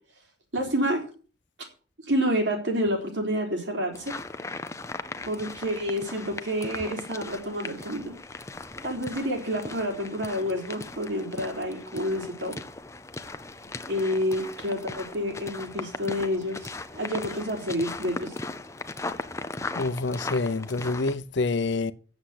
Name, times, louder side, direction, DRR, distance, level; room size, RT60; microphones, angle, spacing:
voice 1, 0.5-1.0 2.0-4.2 5.2-8.1 8.8-12.5 13.9-18.3, equal, 85° right, 3.7 m, -29 dB
sound 1, 3.9-21.2, left 2 dB, 15° left, 0.6 m, -38 dB
voice 2, 19.8-21.9, left 3 dB, 85° left, 0.7 m, -27 dB
8.4 x 7.3 x 7.8 m
head